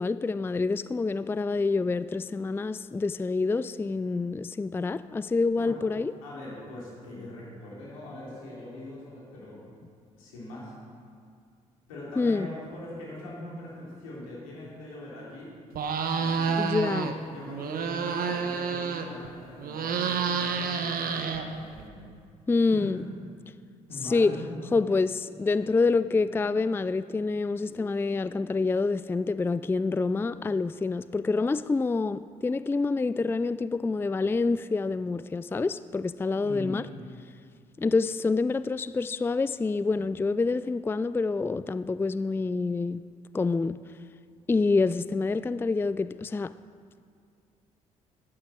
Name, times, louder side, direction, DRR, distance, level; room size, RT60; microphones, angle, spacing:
voice 1, 0.0-6.1 12.2-12.5 16.6-17.1 22.5-23.0 24.1-24.4 24.7-36.9 37.8-43.0 43.3-43.8 44.5-46.5, left 3 dB, 15° left, 0.3 m, -27 dB
voice 2, 6.2-9.6 10.2-10.7 11.9-15.5 16.1-22.1 22.7-23.0 23.9-24.5 36.4-36.8, left 1 dB, 90° left, 3.4 m, -42 dB
sound 1, 15.7-17.1 17.5-19.3 19.6-21.8, right 6 dB, 60° right, 1.1 m, -29 dB
10.5 x 9.8 x 6.4 m
hypercardioid pair, 50°, 17 cm